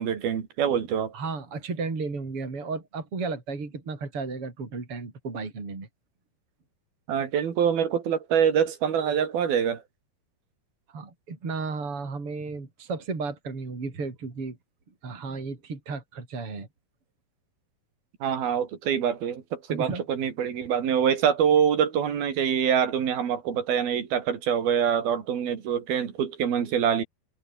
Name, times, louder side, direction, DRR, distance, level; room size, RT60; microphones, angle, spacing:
voice 1, 0.0-1.1 7.1-9.8 18.2-27.0, right 8 dB, 90° right, 4.9 m, -25 dB
voice 2, 1.1-5.9 10.9-14.6 15.0-16.7 19.7-20.0, right 4 dB, 35° right, 5.7 m, -34 dB
omnidirectional pair, 4.2 m